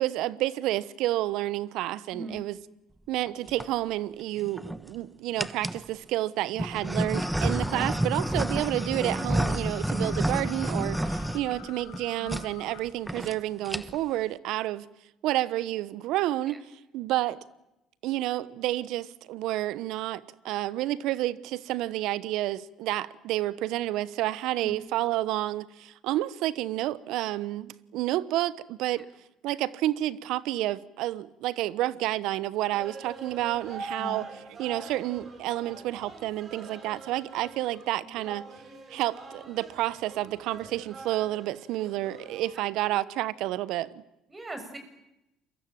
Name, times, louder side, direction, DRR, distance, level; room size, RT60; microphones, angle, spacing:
voice 1, 0.0-2.6 3.1-14.9 15.2-16.6 16.9-17.4 18.0-29.1 29.4-34.3 34.6-38.4 38.9-44.0, right 15 dB, 70° right, 1.0 m, -30 dB
sound 1, 3.3-3.7 4.4-4.9 5.4-5.8 6.6-12.0 12.3-12.5 12.8-12.9 13.1-13.3 13.6-14.1, right 1 dB, 5° right, 1.1 m, -29 dB
sound 2, 7.0-12.8, left 12 dB, 75° left, 3.1 m, -47 dB
sound 3, 32.7-42.6, right 3 dB, 45° right, 7.3 m, -44 dB
voice 2, 42.5-43.0 44.3-44.8, right 1 dB, 25° right, 7.0 m, -41 dB
28.5 x 23.0 x 7.6 m
hypercardioid pair, 65°, 0 cm